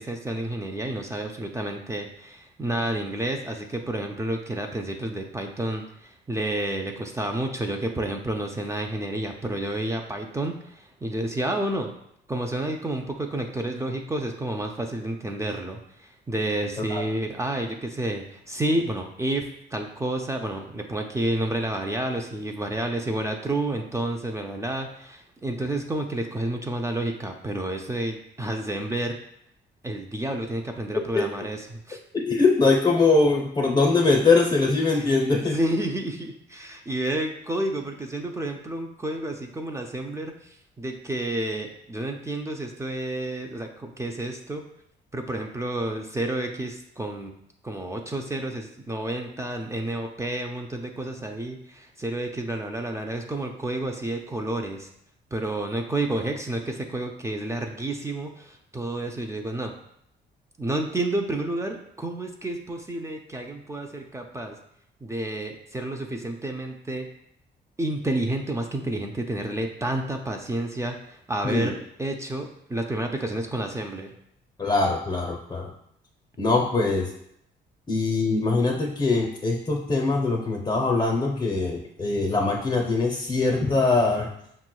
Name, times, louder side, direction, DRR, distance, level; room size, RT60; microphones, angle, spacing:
voice 1, 0.0-11.9 12.3-19.4 19.7-29.2 29.8-32.0 35.4-44.6 45.1-47.3 47.6-54.9 55.3-59.7 60.6-64.6 65.0-67.1 67.8-74.1, right 1 dB, 15° right, 3 dB, 0.4 m, -30 dB
voice 2, 32.1-35.6 71.4-71.7 74.6-75.7 76.4-77.1 77.9-84.3, left 3 dB, 25° left, -1 dB, 0.6 m, -22 dB
5.3 x 3.0 x 2.2 m, 0.73 s
cardioid pair, 90°, 20 cm